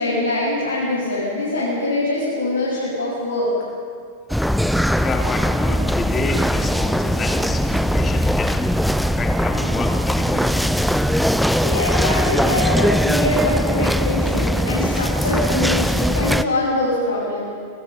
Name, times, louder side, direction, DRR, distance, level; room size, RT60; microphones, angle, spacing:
voice 1, 0.0-3.5 11.6-17.5, left 2 dB, 80° left, -9 dB, 6.9 m, -23 dB
sound 1, 4.3-16.4, equal, ahead, 0.7 m, -20 dB
voice 2, 4.5-8.8 9.1-10.6, left 4 dB, 20° left, 3 dB, 2.7 m, -30 dB
29.0 x 21.0 x 5.7 m, 2.1 s
figure-of-eight pair, 90°, 0 cm